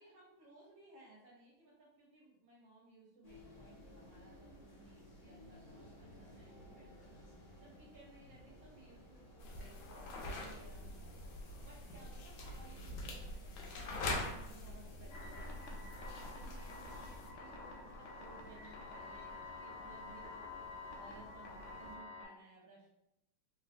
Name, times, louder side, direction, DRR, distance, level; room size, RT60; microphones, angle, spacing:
voice 1, 0.0-11.1 11.6-20.5 20.9-22.9, right 2 dB, 75° right, -4 dB, 1.4 m, -60 dB
sound 1, 3.2-22.0, equal, 55° left, 0.8 m, -57 dB
sound 2, 9.4-17.3, left 2 dB, 90° left, 1.4 m, -44 dB
sound 3, 15.1-22.3, left 3 dB, 75° left, 1.2 m, -49 dB
3.6 x 2.3 x 2.5 m, 0.88 s
omnidirectional pair, 2.2 m